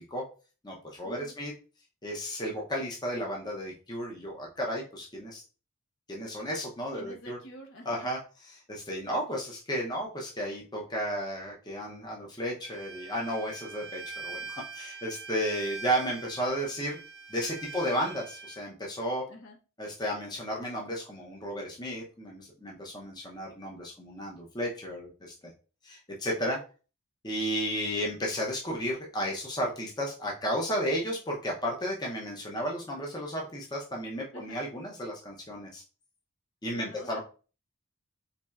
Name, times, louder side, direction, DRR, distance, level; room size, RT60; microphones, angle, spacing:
voice 1, 0.6-1.5 2.0-5.4 6.1-7.4 7.8-17.0 17.3-19.2 19.8-25.5 25.8-26.6 27.2-35.8 36.6-37.2, equal, 20° left, -2 dB, 0.6 m, -33 dB
voice 2, 6.9-8.1 17.8-18.0 19.3-19.6 34.3-34.6 36.7-37.2, left 1 dB, 60° left, 2 dB, 0.8 m, -47 dB
Bowed string instrument, 12.6-18.6, right 4 dB, 40° left, 1.5 m, -43 dB
4.2 x 3.1 x 2.3 m, 0.36 s
head